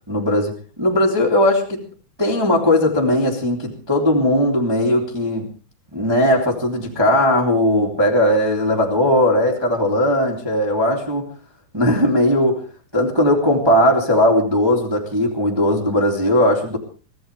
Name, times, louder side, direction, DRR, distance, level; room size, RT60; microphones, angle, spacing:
voice 1, 0.1-0.5 0.8-1.8 2.2-5.4 5.9-11.3 11.7-12.6 12.9-16.8, left 1 dB, 5° right, -1 dB, 2.4 m, -18 dB
24.5 x 16.5 x 3.4 m, 0.36 s
omnidirectional pair, 4.5 m